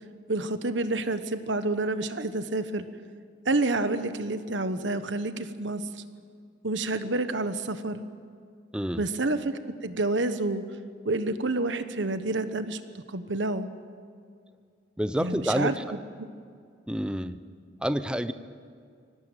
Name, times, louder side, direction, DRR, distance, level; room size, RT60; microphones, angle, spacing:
voice 1, 0.3-2.9 3.4-5.8 6.6-8.0 9.0-10.6 11.0-12.8 13.1-13.7 15.2-15.7 16.2-16.3, right 2 dB, 70° right, 10 dB, 1.2 m, -28 dB
voice 2, 15.0-15.8 16.9-17.4 17.8-18.3, equal, 5° right, 11 dB, 0.8 m, -28 dB
24.5 x 18.0 x 9.2 m, 2.2 s
head